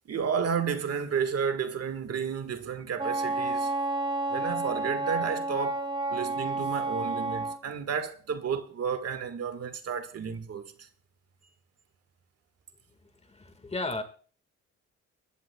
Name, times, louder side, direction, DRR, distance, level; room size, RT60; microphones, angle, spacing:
voice 1, 0.0-3.7 4.3-10.9, right 7 dB, 55° right, 1.6 m, -32 dB
Wind instrument woodwind instrument, 3.0-7.6, right 2 dB, 15° right, 2.0 m, -30 dB
voice 2, 13.2-14.0, left 2 dB, 20° left, 1.7 m, -34 dB
22.0 x 14.0 x 2.3 m
cardioid pair, 90°, 30 cm